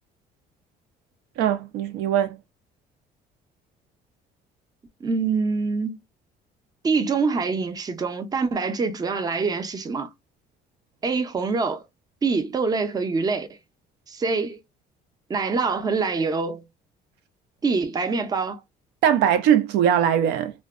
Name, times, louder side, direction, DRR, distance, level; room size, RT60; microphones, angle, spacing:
voice 1, 1.4-2.4 19.0-20.5, right 9 dB, 85° right, 0.4 m, -20 dB
voice 2, 5.0-6.0 6.8-10.1 11.0-11.8 12.2-13.5 14.1-14.6 15.3-16.7 17.6-18.6, right 4 dB, 20° right, 0.4 m, -25 dB
2.5 x 2.1 x 2.3 m
cardioid pair, 110°, 17 cm